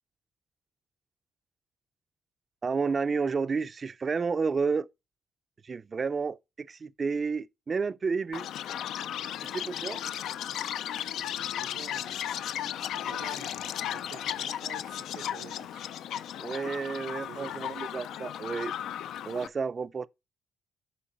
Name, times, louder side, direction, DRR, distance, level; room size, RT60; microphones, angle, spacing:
voice 1, 2.6-4.9 5.6-8.5 9.5-10.0 16.4-18.7 19.2-20.1, right 5 dB, 40° right, 0.4 m, -31 dB
Chirp tweet, 8.3-19.5, left 10 dB, 80° left, 0.4 m, -35 dB
voice 2, 11.5-12.2 12.7-15.9 17.2-17.8, right 9 dB, 90° right, 0.8 m, -49 dB
8.5 x 5.4 x 4.3 m
cardioid pair, 90°, 0 cm